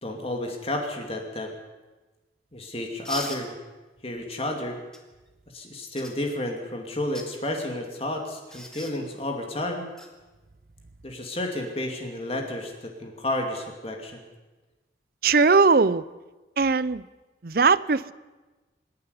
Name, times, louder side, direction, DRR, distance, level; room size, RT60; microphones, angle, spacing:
voice 1, 0.0-1.5 2.5-3.6 4.0-4.8 5.5-9.9 11.0-14.2, left 1 dB, 30° left, 2 dB, 2.6 m, -31 dB
sound 1, 3.0-3.4 4.9-5.0 6.0-6.1 7.0-7.3 8.5-8.9 10.0-10.1 12.1-12.3, left 1 dB, 5° left, 2.1 m, -38 dB
voice 2, 15.2-16.0 16.6-17.0 17.4-18.1, right 4 dB, 50° right, 18 dB, 0.6 m, -19 dB
25.5 x 11.0 x 9.7 m, 1.2 s
head